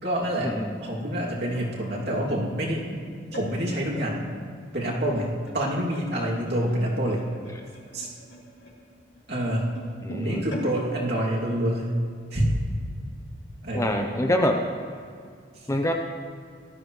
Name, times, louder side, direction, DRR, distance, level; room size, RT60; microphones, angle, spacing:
voice 1, 0.0-0.5 0.8-3.0 3.3-4.3 4.7-7.2 7.9-8.1 9.3-9.7 10.1-11.9 12.3-12.5 13.6-14.0 15.5-15.7, right 1 dB, 55° right, -4 dB, 2.8 m, -27 dB
sound 1, 1.2-4.1 4.7-12.0 12.4-12.6 12.9-13.2 13.9-14.0, right 1 dB, 70° left, 3.9 m, -44 dB
voice 2, 10.0-10.4 13.7-14.6 15.7-15.9, left 1 dB, 15° left, 3 dB, 0.7 m, -25 dB
19.5 x 13.5 x 3.3 m, 2.2 s
head